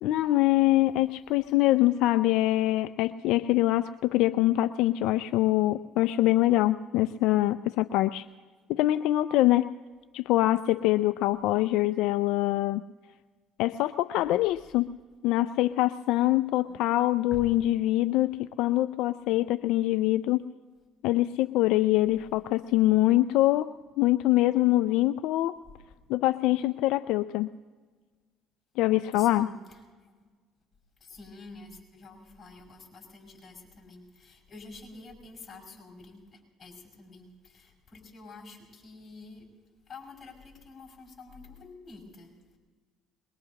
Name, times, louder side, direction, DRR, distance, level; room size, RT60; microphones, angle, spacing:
voice 1, 0.0-8.3 8.7-9.7 10.1-12.8 13.6-14.9 15.2-20.5 21.0-23.7 24.0-25.6 26.1-27.5 28.8-29.5, left 16 dB, 75° left, 12 dB, 0.3 m, -24 dB
voice 2, 29.1-30.3 31.0-39.4 39.9-42.6, left 3 dB, 35° left, 1 dB, 5.7 m, -48 dB
22.0 x 21.5 x 2.9 m, 1.5 s
supercardioid pair, 90°, 0 cm